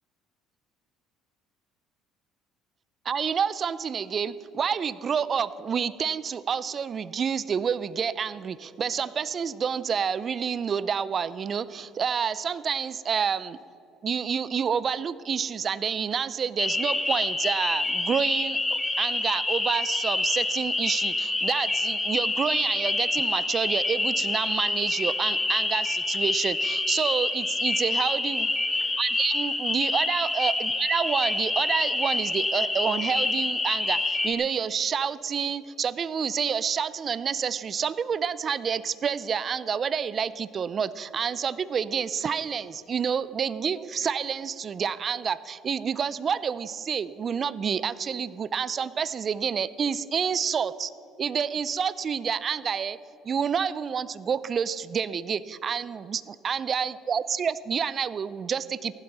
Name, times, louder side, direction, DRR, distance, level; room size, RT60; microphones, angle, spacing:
voice 1, 3.1-13.6 14.0-28.5 29.0-50.9 51.2-53.0 53.2-59.0, right 7 dB, 45° right, 18 dB, 0.5 m, -28 dB
sound 1, 16.6-34.3, left 2 dB, 20° left, 1.7 m, -27 dB
15.5 x 12.0 x 4.2 m, 2.9 s
hypercardioid pair, 65°, 0 cm